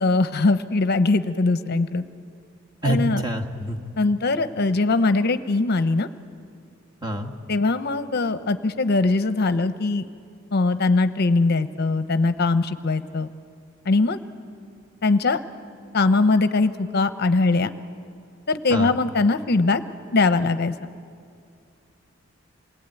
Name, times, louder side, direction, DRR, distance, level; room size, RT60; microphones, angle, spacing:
voice 1, 0.0-2.0 2.8-3.2 4.0-6.1 7.5-10.1 10.5-13.3 13.9-14.2 15.0-15.4 15.9-17.7 18.5-19.8 20.1-20.7, left 3 dB, 50° left, 11 dB, 0.7 m, -21 dB
voice 2, 2.8-3.8 7.0-7.3 18.7-19.0, right 1 dB, 20° right, 2 dB, 1.6 m, -26 dB
28.0 x 19.5 x 9.1 m, 2.4 s
head